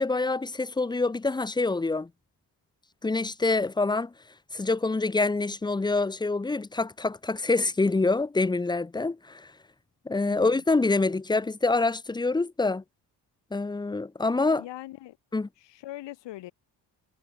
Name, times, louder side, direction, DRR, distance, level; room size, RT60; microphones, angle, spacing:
voice 1, 0.0-2.1 3.0-4.1 4.5-9.5 10.1-12.8 13.5-14.6 15.3-15.5, left 3 dB, 10° left, 0.6 m, -26 dB
voice 2, 10.2-10.6 14.6-15.2 15.6-16.5, left 15 dB, 85° left, 2.1 m, -42 dB
cardioid pair, 110°, 42 cm